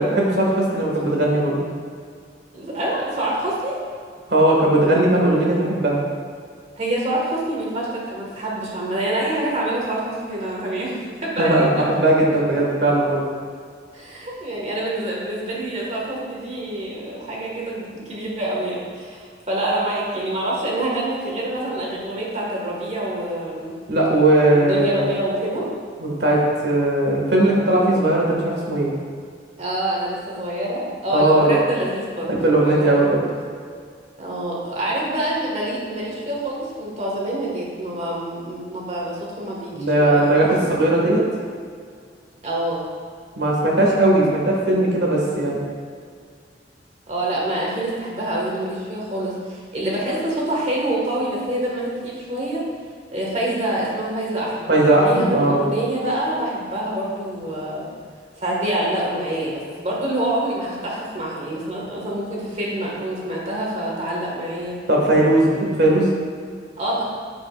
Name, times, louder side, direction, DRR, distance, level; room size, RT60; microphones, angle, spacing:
voice 1, 0.0-1.7 4.3-6.0 11.4-13.2 23.9-25.0 26.0-28.9 31.1-31.6 32.3-33.3 39.7-41.2 43.4-45.6 54.7-55.6 64.9-66.1, right 1 dB, 70° right, -3 dB, 1.8 m, -18 dB
voice 2, 2.5-3.8 6.8-11.9 13.9-23.8 24.5-25.7 29.6-32.3 32.6-33.1 34.2-40.5 42.4-42.8 47.1-52.6 53.1-57.9 58.4-64.8 65.5-65.6 66.8-67.0, right 1 dB, 40° right, -4 dB, 1.7 m, -26 dB
8.7 x 7.3 x 2.5 m, 2.1 s
head